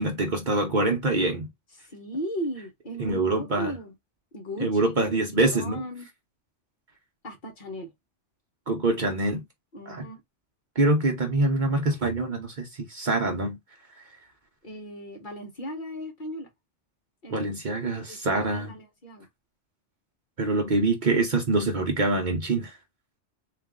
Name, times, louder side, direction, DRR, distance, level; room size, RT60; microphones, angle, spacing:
voice 1, 0.0-1.5 3.0-3.7 4.6-5.8 8.7-9.4 9.9-10.0 10.8-13.6 17.3-18.7 20.4-22.8, right 2 dB, 45° right, 0.8 m, -25 dB
voice 2, 1.9-3.9 4.3-4.8 5.1-6.1 7.2-7.9 9.7-10.2 14.6-16.5 17.2-17.5 18.1-19.3, right 1 dB, 45° left, 1.2 m, -37 dB
4.0 x 2.5 x 3.5 m
omnidirectional pair, 1.2 m